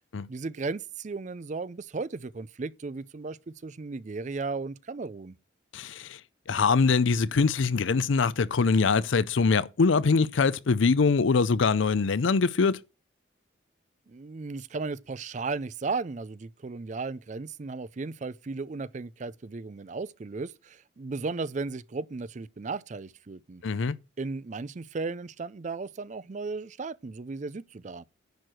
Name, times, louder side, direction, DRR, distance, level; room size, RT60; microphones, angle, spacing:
voice 1, 0.3-5.3 14.1-23.6 24.2-28.0, right 4 dB, 35° right, 0.4 m, -35 dB
voice 2, 5.7-6.2 6.5-12.8 23.6-24.0, left 4 dB, 75° left, 0.5 m, -23 dB
10.5 x 4.6 x 6.4 m
head